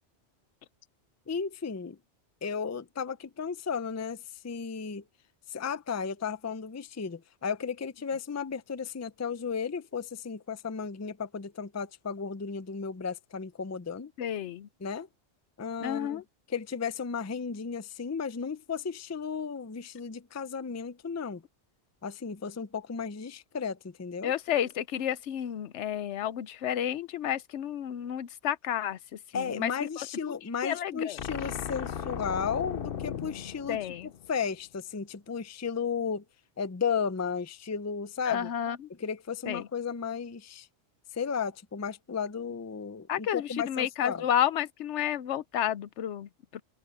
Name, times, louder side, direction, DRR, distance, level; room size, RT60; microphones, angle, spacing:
voice 1, 1.3-2.0 2.4-5.0 5.5-14.1 14.8-15.1 15.6-16.2 16.5-21.4 22.0-24.3 29.3-33.9 34.3-36.2 36.6-38.5 39.0-40.7 41.1-44.2, left 6 dB, 20° left, 0.4 m, -34 dB
voice 2, 14.2-14.7 15.8-16.2 24.2-29.0 29.3-30.1 30.6-31.2 33.7-34.1 38.3-38.8 39.5-39.7 43.1-46.6, left 10 dB, 80° left, 1.0 m, -31 dB
sound 1, 31.2-34.5, left 8 dB, 55° left, 0.9 m, -37 dB
open air
omnidirectional pair, 1.2 m